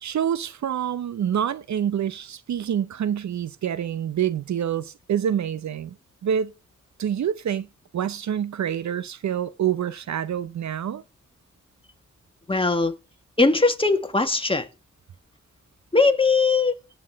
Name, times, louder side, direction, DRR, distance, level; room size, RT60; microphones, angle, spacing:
voice 1, 0.0-6.0 6.2-6.5 7.0-7.7 7.9-11.0, right 9 dB, 65° right, 0.7 m, -27 dB
voice 2, 12.5-12.9 13.4-14.7 15.9-16.7, left 3 dB, 15° left, 1.9 m, -20 dB
17.5 x 6.2 x 3.5 m
cardioid pair, 65°, 31 cm